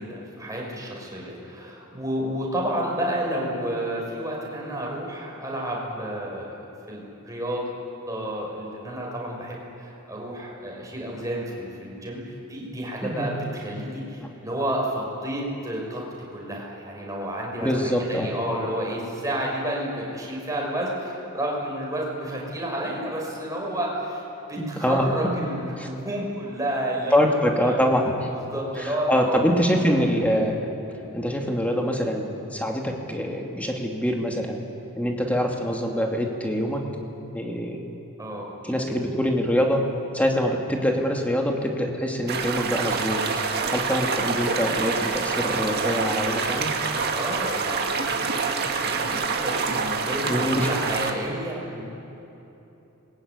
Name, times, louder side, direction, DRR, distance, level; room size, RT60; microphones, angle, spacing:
voice 1, 0.0-7.7 8.1-12.2 12.5-16.0 16.3-24.2 24.5-27.3 27.6-27.7 28.3-29.4 29.8-29.9 38.2-39.0 47.1-51.8, right 1 dB, 15° right, -2 dB, 6.2 m, -31 dB
voice 2, 13.0-13.4 17.6-18.3 24.6-25.3 25.8-25.9 27.1-28.0 28.8-30.7 31.1-34.6 35.0-36.8 37.3-37.8 38.6-39.9 40.1-43.2 43.7-46.7 50.3-50.7, equal, 5° left, 1 dB, 2.6 m, -24 dB
sound 1, 42.3-51.1, right 5 dB, 50° right, 2.0 m, -26 dB
26.0 x 21.5 x 9.7 m, 3.0 s
head